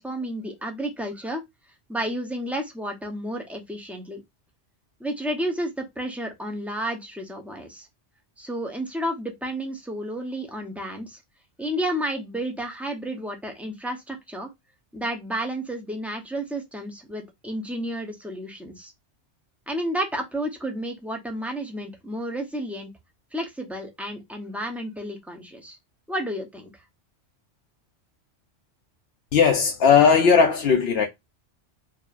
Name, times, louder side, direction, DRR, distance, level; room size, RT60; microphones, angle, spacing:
voice 1, 0.0-1.4 1.9-4.2 5.0-7.9 8.4-11.2 11.6-14.5 14.9-18.9 19.7-22.9 23.3-25.8 26.1-26.7, right 1 dB, ahead, 0.6 m, -31 dB
voice 2, 29.3-31.1, left 6 dB, 65° left, 0.8 m, -17 dB
5.0 x 2.7 x 2.4 m
omnidirectional pair, 1.2 m